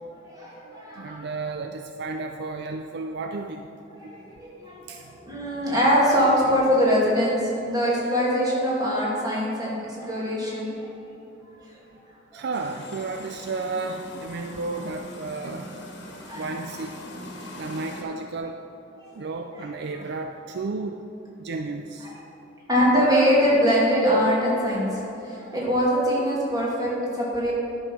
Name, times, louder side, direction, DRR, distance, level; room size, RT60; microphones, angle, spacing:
voice 1, 0.3-1.2 4.0-10.9 16.0-16.5 19.0-19.1 19.6-19.7 22.7-27.5, equal, 20° right, -6 dB, 2.4 m, -23 dB
voice 2, 1.0-3.7 4.0-4.1 4.9-5.0 12.3-15.7 16.3-17.0 17.5-18.6 19.2-21.0 21.4-22.1, right 3 dB, 60° right, 5 dB, 0.4 m, -32 dB
sound 1, 12.5-18.0, left 1 dB, 60° left, 1.5 m, -41 dB
11.5 x 5.4 x 6.0 m, 2.9 s
head